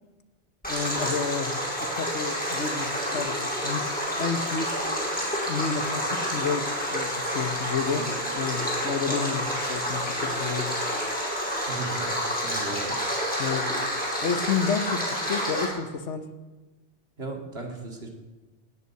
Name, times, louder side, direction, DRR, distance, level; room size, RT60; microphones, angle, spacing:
Stream, 0.6-15.7, equal, 5° left, 4.8 m, -29 dB
voice 1, 0.7-3.9 4.2-4.7 5.4-10.7 13.4-13.7 14.2-16.3, left 6 dB, 80° left, 10 dB, 1.4 m, -30 dB
voice 2, 11.7-13.0 17.2-18.1, right 2 dB, 60° right, 1 dB, 2.8 m, -36 dB
19.0 x 8.3 x 7.8 m, 1.2 s
omnidirectional pair, 1.2 m